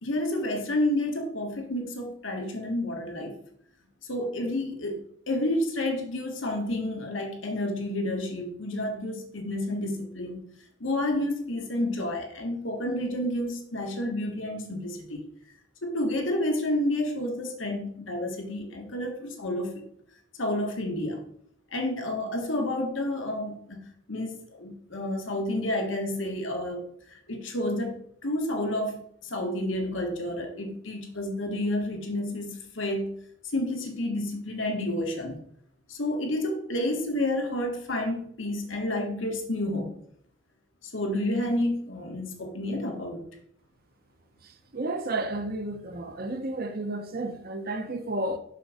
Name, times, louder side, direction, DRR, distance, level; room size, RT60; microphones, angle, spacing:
voice 1, 0.0-3.4 4.1-10.4 10.8-15.3 15.8-19.8 20.4-21.2 21.7-33.1 33.5-35.4 35.9-39.9 40.8-43.2, left 1 dB, 85° left, 1.7 m, -30 dB
voice 2, 44.7-48.4, right 2 dB, 50° right, 0.9 m, -32 dB
6.7 x 6.4 x 5.0 m
head